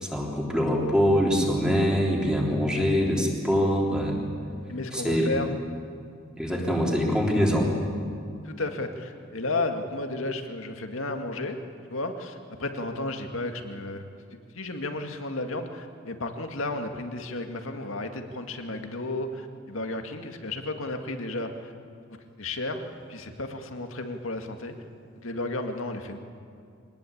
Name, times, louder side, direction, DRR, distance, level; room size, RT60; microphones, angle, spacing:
voice 1, 0.0-4.2 4.9-5.3 6.4-7.7, equal, 5° right, -2 dB, 3.4 m, -24 dB
voice 2, 4.7-5.5 8.4-11.6 11.9-14.1 14.5-21.7 22.4-24.8 25.2-26.2, left 2 dB, 75° left, 5 dB, 2.0 m, -33 dB
24.0 x 19.5 x 8.7 m, 2.4 s
head